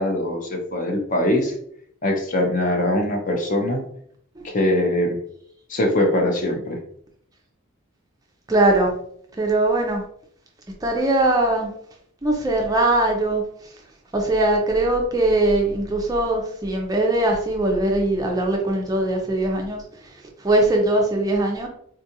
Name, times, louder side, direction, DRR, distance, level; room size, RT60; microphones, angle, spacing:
voice 1, 0.0-1.5 2.0-3.9 4.5-5.2 5.7-6.8, left 1 dB, 35° left, 2 dB, 0.6 m, -22 dB
voice 2, 8.5-8.9 9.4-10.0 10.8-11.7 12.2-13.7 14.1-21.7, right 2 dB, 15° right, 1 dB, 0.4 m, -21 dB
3.7 x 2.3 x 2.7 m, 0.67 s
head